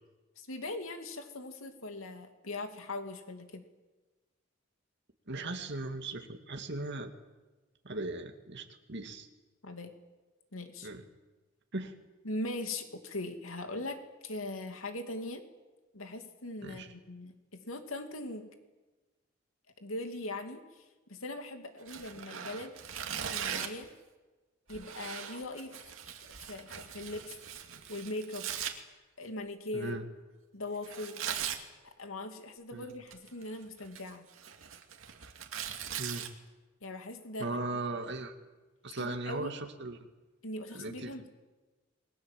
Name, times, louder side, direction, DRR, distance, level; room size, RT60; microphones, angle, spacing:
voice 1, 0.4-3.6 9.6-9.9 10.5-10.9 12.2-15.4 15.9-18.5 19.8-22.8 23.3-23.9 24.7-25.7 26.5-27.3 27.9-28.5 29.2-30.0 30.5-31.2 31.8-34.3 36.8-37.5 39.0-39.5 40.4-41.3, left 2 dB, 90° left, 6 dB, 2.8 m, -40 dB
voice 2, 5.3-7.1 7.8-9.3 10.8-11.0 11.7-11.9 16.6-16.9 29.7-30.0 32.7-32.9 36.0-36.3 37.4-38.3 38.8-40.0 40.7-41.1, right 2 dB, 60° right, 4 dB, 2.3 m, -38 dB
Tearing, 21.8-23.9 24.7-28.7 30.8-31.6 32.9-33.4 33.8-36.3, right 8 dB, 80° right, 2.5 m, -40 dB
28.0 x 21.5 x 7.7 m, 1.2 s
head